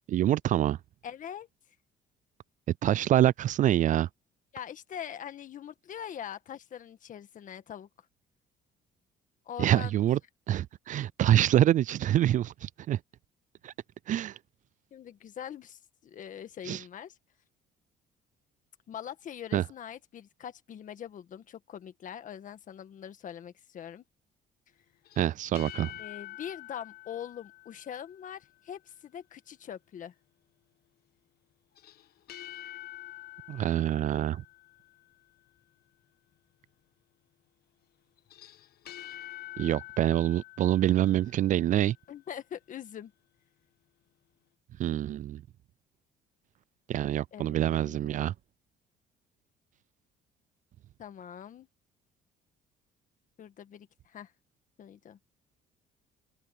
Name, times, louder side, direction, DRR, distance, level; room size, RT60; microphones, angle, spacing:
voice 1, 0.1-0.8 2.8-4.1 9.6-10.2 10.5-13.0 13.6-13.7 14.1-14.4 16.7-16.8 19.5-19.6 25.2-25.9 33.5-34.4 39.6-42.0 44.8-45.4 46.9-48.3, right 12 dB, 50° right, 0.4 m, -26 dB
voice 2, 1.0-1.5 4.5-7.9 9.4-9.9 14.9-17.2 18.9-24.0 26.0-30.1 42.1-43.1 47.3-48.2 51.0-51.7 53.4-54.3 54.8-55.2, left 9 dB, 50° left, 1.7 m, -43 dB
sound 1, 25.1-28.4 31.8-35.1 38.2-41.8, left 15 dB, 65° left, 1.3 m, -47 dB
open air
cardioid pair, 110°, 17 cm